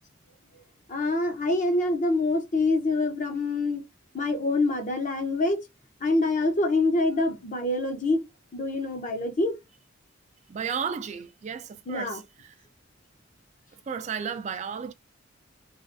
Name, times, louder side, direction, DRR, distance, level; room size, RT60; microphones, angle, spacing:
voice 1, 0.9-3.8 4.1-5.6 6.0-8.2 8.5-9.6 11.9-12.2, left 2 dB, 40° left, 0.7 m, -25 dB
voice 2, 10.5-12.5 13.9-14.9, right 6 dB, 35° right, 0.3 m, -33 dB
3.2 x 2.4 x 2.6 m
head